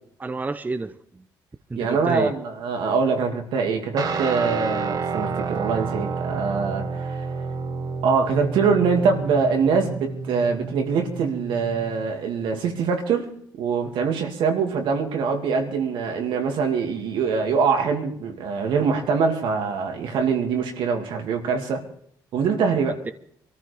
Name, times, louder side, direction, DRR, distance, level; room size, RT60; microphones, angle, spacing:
voice 1, 0.2-1.2 1.7-2.3 23.1-23.2, right 3 dB, 20° right, 0.7 m, -29 dB
voice 2, 1.8-7.2 8.0-13.3 13.6-21.8 22.3-23.0, right 5 dB, 80° right, 2.3 m, -23 dB
Guitar, 4.0-12.1, right 4 dB, 50° right, 1.5 m, -30 dB
23.5 x 14.0 x 3.4 m
cardioid pair, 80°, 8 cm